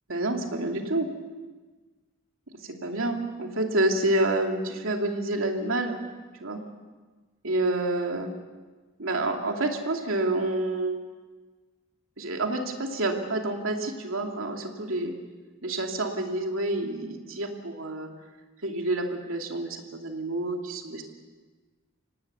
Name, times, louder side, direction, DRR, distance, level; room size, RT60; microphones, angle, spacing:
voice 1, 0.1-1.1 2.6-6.0 6.4-6.6 7.4-8.3 9.0-11.0 12.2-15.1 15.6-18.1 18.6-21.0, right 2 dB, 80° right, 2 dB, 2.8 m, -28 dB
25.5 x 18.5 x 7.0 m, 1.3 s
head